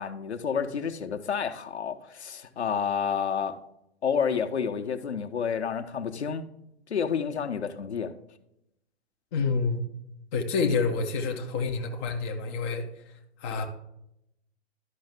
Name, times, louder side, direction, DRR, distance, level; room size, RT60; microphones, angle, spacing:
voice 1, 0.0-3.6 4.0-6.4 6.9-8.1, left 7 dB, 75° left, 6 dB, 0.8 m, -29 dB
voice 2, 9.3-9.8 10.3-12.8 13.4-13.7, left 4 dB, 15° left, 2 dB, 0.3 m, -28 dB
11.5 x 5.5 x 3.4 m, 0.82 s
figure-of-eight pair, 110°, 33 cm